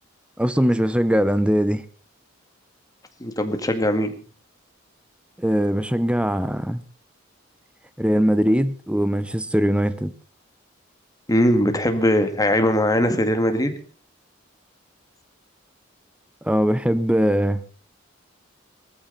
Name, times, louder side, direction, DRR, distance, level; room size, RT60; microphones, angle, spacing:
voice 1, 0.4-1.8 5.4-6.8 8.0-10.1 16.4-17.6, equal, 5° right, 0.8 m, -21 dB
voice 2, 3.2-4.1 11.3-13.8, equal, 20° left, 2.0 m, -20 dB
19.0 x 14.5 x 4.1 m
head